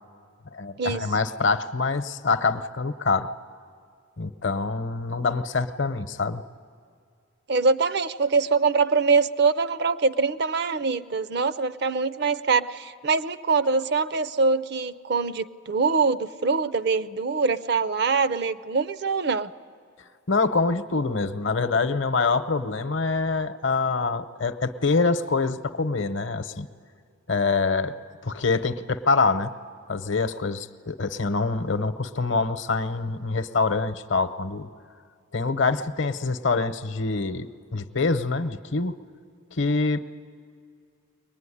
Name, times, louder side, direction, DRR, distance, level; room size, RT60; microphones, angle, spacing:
voice 1, 0.5-3.3 4.2-6.4 20.3-26.7 27.3-27.9 28.2-29.5 29.9-34.7 35.3-38.9 39.5-40.0, left 4 dB, 65° left, 12 dB, 0.8 m, -25 dB
voice 2, 7.5-19.5, right 4 dB, 55° right, 15 dB, 0.5 m, -23 dB
23.0 x 19.5 x 9.9 m, 2.2 s
head